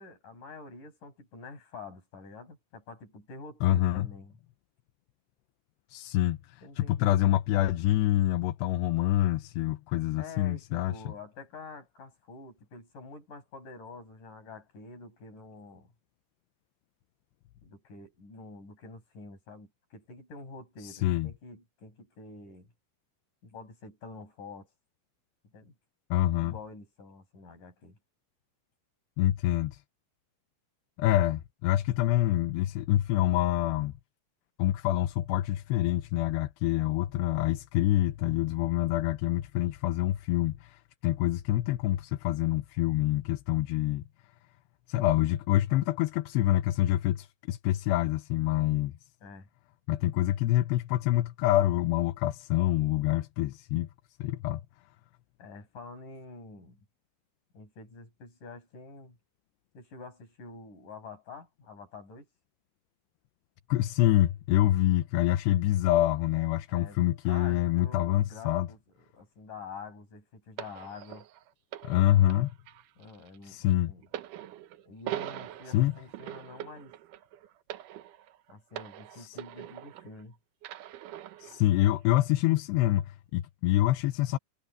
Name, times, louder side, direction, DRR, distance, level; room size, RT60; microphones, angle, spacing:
voice 1, 0.0-4.4 6.6-7.0 10.2-15.9 17.6-22.7 23.4-24.7 25.5-25.7 26.4-28.0 49.2-49.5 55.4-56.8 57.5-59.2 59.7-62.3 66.7-68.8 69.1-71.3 73.0-74.0 74.9-76.9 78.5-80.4, left 3 dB, 45° left, 8.0 m, -47 dB
voice 2, 3.6-4.1 5.9-11.1 20.8-21.3 26.1-26.5 29.2-29.8 31.0-33.9 34.6-44.0 44.9-48.9 49.9-53.9 54.2-54.6 63.7-68.7 71.8-72.5 73.4-73.9 75.7-75.9 79.2-79.4 81.4-84.4, left 14 dB, 75° left, 2.8 m, -26 dB
sound 1, 70.6-80.2 80.6-81.7 82.4-82.6, right 12 dB, 90° right, 1.8 m, -43 dB
omnidirectional pair, 5.1 m